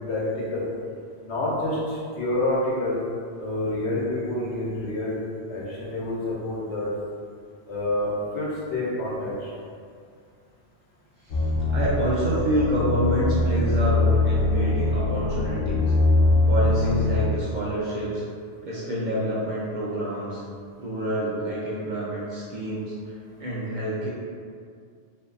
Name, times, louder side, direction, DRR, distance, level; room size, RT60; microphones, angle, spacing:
voice 1, 0.1-0.6 1.2-3.0 3.4-5.2 5.5-6.9 7.7-9.5, left 1 dB, 90° left, -6 dB, 1.0 m, -28 dB
voice 2, 11.2-15.9 16.5-18.2 18.6-20.4 20.8-24.1, right 1 dB, 55° right, -8 dB, 0.5 m, -27 dB
sound 1, 11.3-17.2, left 2 dB, 60° left, 0.7 m, -22 dB
2.6 x 2.2 x 2.4 m, 2.2 s
omnidirectional pair, 1.2 m